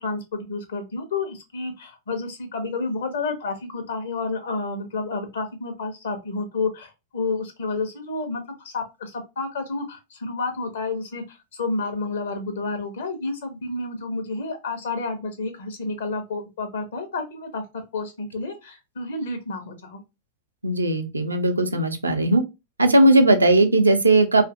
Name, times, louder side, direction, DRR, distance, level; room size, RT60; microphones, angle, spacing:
voice 1, 0.0-20.0, left 3 dB, 60° left, 5 dB, 0.8 m, -30 dB
voice 2, 20.6-22.4 22.8-24.4, right 2 dB, 80° right, 6 dB, 0.4 m, -18 dB
2.6 x 2.4 x 2.4 m, 0.24 s
figure-of-eight pair, 90°, 0 cm